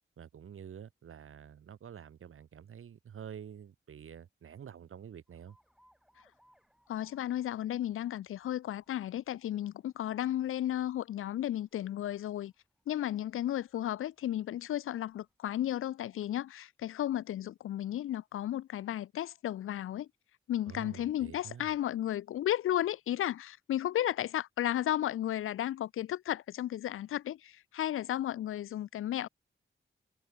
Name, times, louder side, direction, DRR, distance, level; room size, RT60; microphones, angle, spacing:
voice 1, 0.2-5.6 20.7-21.7, right 8 dB, 85° right, 2.1 m, -48 dB
Alarm, 5.3-15.4, equal, ahead, 7.1 m, -73 dB
voice 2, 6.9-12.5 12.9-20.1 20.5-29.3, left 12 dB, 80° left, 0.4 m, -34 dB
cardioid pair, 50°, 21 cm